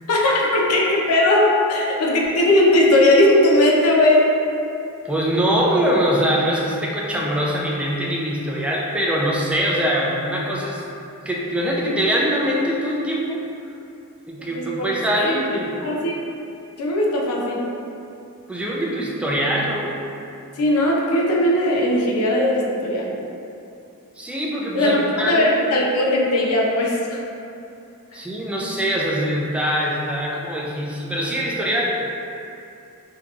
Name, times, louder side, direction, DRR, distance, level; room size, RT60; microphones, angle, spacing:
voice 1, 0.1-4.3 14.6-14.9 15.2-15.3 15.8-16.1 16.8-17.7 20.6-23.1 24.7-27.2, left 1 dB, 75° left, -2 dB, 0.4 m, -18 dB
voice 2, 5.0-10.8 11.3-13.4 14.3-15.7 18.5-19.9 24.2-25.5 28.1-32.1, equal, 5° right, -4 dB, 0.3 m, -23 dB
3.8 x 2.7 x 2.3 m, 2.7 s
head